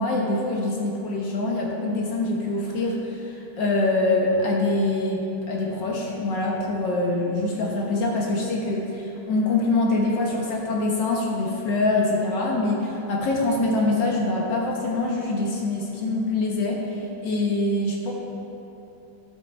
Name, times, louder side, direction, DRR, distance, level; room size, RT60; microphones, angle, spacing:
voice 1, 0.0-18.1, left 2 dB, 60° left, -2 dB, 1.7 m, -24 dB
12.5 x 6.3 x 4.4 m, 2.9 s
omnidirectional pair, 2.3 m